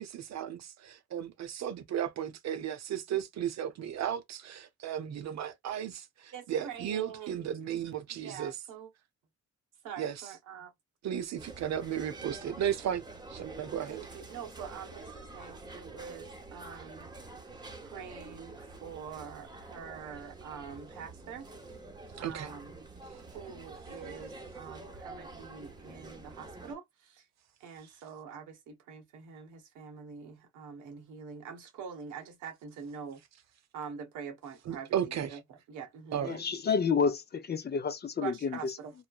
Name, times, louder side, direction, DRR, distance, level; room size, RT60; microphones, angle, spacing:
voice 1, 0.0-8.6 10.0-10.3 11.0-13.0 13.3-14.0 22.2-22.5 34.7-35.4 36.1-36.4, right 9 dB, 60° right, 0.8 m, -35 dB
voice 2, 6.3-7.4 8.1-8.9 9.8-10.7 13.9-17.1 17.8-21.5 22.2-22.8 23.3-27.2 27.6-33.2 33.7-35.4 35.7-36.2 38.2-38.9, right 7 dB, 90° right, 1.1 m, -45 dB
sound 1, 11.4-26.7, right 2 dB, 15° right, 0.8 m, -47 dB
voice 3, 36.2-38.7, left 5 dB, 35° left, 0.5 m, -30 dB
3.1 x 2.1 x 2.3 m
cardioid pair, 90°, 30 cm